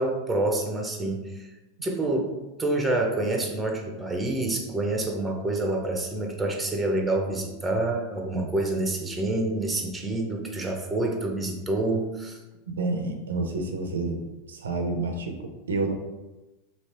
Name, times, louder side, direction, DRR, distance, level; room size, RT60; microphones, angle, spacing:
voice 1, 0.0-1.5 1.8-2.3 2.6-12.4, right 2 dB, 10° right, 2 dB, 0.8 m, -27 dB
voice 2, 12.7-14.2 14.5-15.9, right 3 dB, 90° right, 4 dB, 0.6 m, -29 dB
3.2 x 3.0 x 4.4 m, 1.1 s
hypercardioid pair, 105°, 0 cm